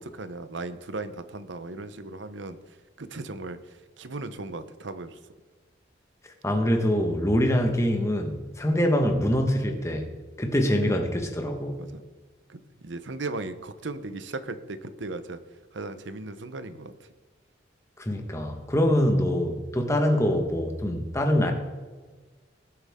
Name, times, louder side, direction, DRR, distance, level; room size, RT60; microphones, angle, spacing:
voice 1, 0.0-5.2 11.8-12.0 12.5-15.4 15.7-17.1, right 3 dB, 75° right, 11 dB, 0.8 m, -37 dB
voice 2, 6.4-10.1 10.4-11.8 18.0-21.5, equal, 15° left, 3 dB, 1.4 m, -24 dB
19.5 x 7.9 x 3.7 m, 1.4 s
head